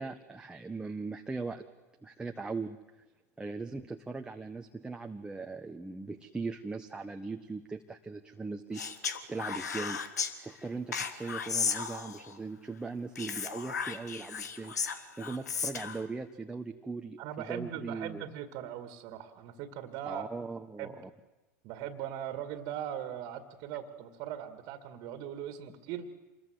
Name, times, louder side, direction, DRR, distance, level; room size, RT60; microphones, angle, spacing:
voice 1, 0.0-1.6 2.0-2.8 3.4-10.0 10.4-14.7 15.2-18.2 20.0-21.1, right 3 dB, 10° right, 4 dB, 1.3 m, -39 dB
Speech, 8.7-10.3 10.9-12.3 13.1-16.0, left 6 dB, 80° left, 1.7 m, -35 dB
voice 2, 17.2-20.3 20.8-21.0 21.6-26.1, right 10 dB, 50° right, 8 dB, 2.2 m, -40 dB
27.0 x 21.5 x 8.2 m, 1.1 s
hypercardioid pair, 90°, 9 cm